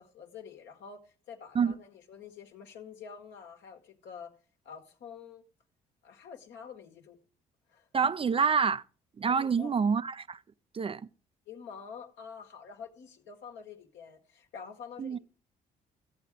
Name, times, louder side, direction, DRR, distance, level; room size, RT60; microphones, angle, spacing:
voice 1, 0.0-4.3 4.6-5.4 6.0-7.2 7.7-7.9 9.2-9.7 11.5-15.2, left 6 dB, 65° left, 1.5 m, -47 dB
voice 2, 7.9-8.8 9.2-10.4 10.7-11.0 15.0-15.2, right 6 dB, 30° right, 0.4 m, -27 dB
14.0 x 8.2 x 3.6 m
hypercardioid pair, 50°, 20 cm